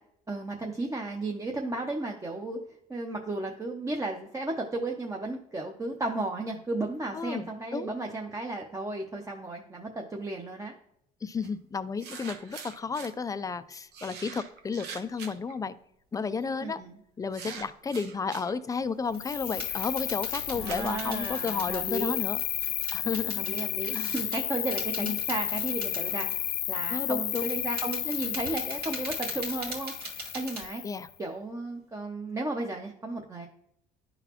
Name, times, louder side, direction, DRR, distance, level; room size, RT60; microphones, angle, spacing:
voice 1, 0.3-2.6 2.9-10.7 16.6-17.0 20.6-22.2 23.4-26.3 26.7-30.8 31.2-33.5, right 2 dB, 20° right, 1 dB, 0.7 m, -34 dB
voice 2, 7.1-7.9 11.2-15.8 16.1-16.8 17.2-22.4 22.9-23.6 23.9-24.1 25.0-25.2 26.9-27.5 30.8-31.1, left 5 dB, 20° left, 13 dB, 0.4 m, -32 dB
sound 1, 11.4-11.5 12.0-13.1 13.9-15.5 16.4-16.7 17.3-18.5 19.2-21.5, right 6 dB, 80° right, 0.9 m, -44 dB
sound 2, 18.8-18.9 19.0-30.6, right 3 dB, 65° right, 1.8 m, -43 dB
Cricket, 19.1-31.1, left 12 dB, 75° left, 0.5 m, -33 dB
11.0 x 4.0 x 2.9 m, 0.72 s
cardioid pair, 110°, 17 cm